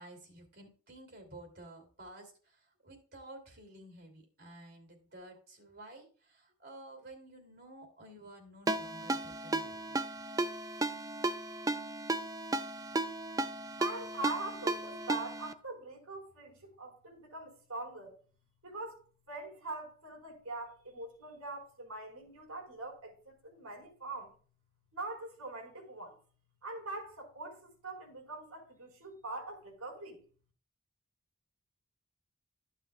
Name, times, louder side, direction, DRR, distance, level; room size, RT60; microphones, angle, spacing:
voice 1, 0.0-10.0, right 1 dB, 50° right, 2.8 m, -52 dB
Ringtone, 8.7-15.5, right 2 dB, 15° right, 0.4 m, -35 dB
voice 2, 13.8-18.2 18.6-19.0 19.3-24.3 24.9-26.2 26.6-30.2, right 2 dB, 85° right, 4.8 m, -43 dB
14.5 x 7.6 x 2.4 m
head